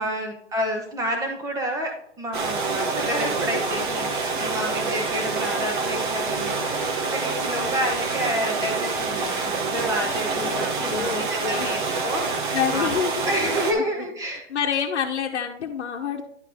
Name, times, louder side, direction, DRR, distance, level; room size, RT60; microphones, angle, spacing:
voice 1, 0.0-12.9 13.2-14.4, equal, 10° right, 2 dB, 1.2 m, -29 dB
sound 1, 2.3-13.7, right 4 dB, 45° right, 1.3 m, -27 dB
voice 2, 7.4-7.8 10.3-10.6 10.9-11.7 12.5-13.2 13.7-14.1 14.5-16.2, left 7 dB, 70° left, -1 dB, 1.1 m, -28 dB
10.5 x 4.6 x 3.5 m, 0.68 s
hypercardioid pair, 150°, 35 cm